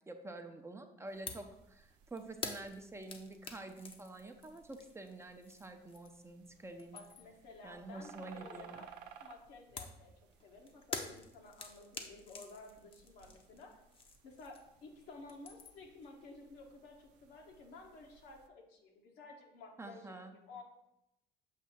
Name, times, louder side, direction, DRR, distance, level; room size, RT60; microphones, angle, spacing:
voice 1, 0.1-7.0 7.6-8.8 19.8-20.3, right 2 dB, 15° right, 5 dB, 0.6 m, -48 dB
sound 1, 1.1-18.5, right 8 dB, 85° right, 0.6 m, -61 dB
sound 2, 1.3-1.5 1.8-6.3 6.6-7.4 9.8-14.9 15.1-15.9, left 4 dB, 30° left, 0.7 m, -47 dB
voice 2, 6.9-8.9 9.2-10.1 10.4-13.8 14.2-20.6, left 3 dB, 85° left, 1 dB, 1.3 m, -54 dB
7.3 x 2.7 x 5.8 m, 0.85 s
cardioid pair, 110°, 17 cm